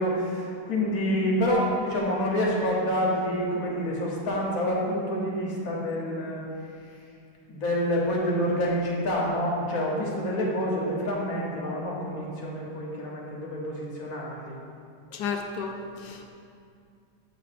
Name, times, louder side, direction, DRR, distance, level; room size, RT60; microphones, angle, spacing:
voice 1, 0.0-6.4 7.5-14.6, equal, 60° left, -3 dB, 1.5 m, -27 dB
voice 2, 15.1-16.3, left 5 dB, 90° left, 3 dB, 1.2 m, -33 dB
7.0 x 4.2 x 4.2 m, 2.4 s
omnidirectional pair, 1.8 m